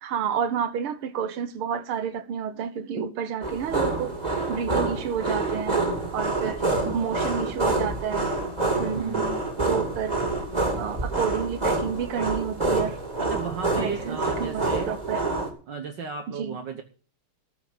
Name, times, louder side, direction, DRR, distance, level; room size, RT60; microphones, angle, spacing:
voice 1, 0.0-4.2 4.5-5.8 6.1-6.6 6.9-8.3 8.8-9.3 9.7-10.2 10.7-13.0 13.8-15.2 16.3-16.6, right 7 dB, 80° right, 1.9 m, -30 dB
sound 1, 3.4-15.5, right 2 dB, 20° right, 2.6 m, -27 dB
voice 2, 6.4-7.0 8.9-9.5 13.2-14.9 15.7-16.8, right 5 dB, 60° right, 1.7 m, -34 dB
13.5 x 5.8 x 8.9 m
omnidirectional pair, 2.4 m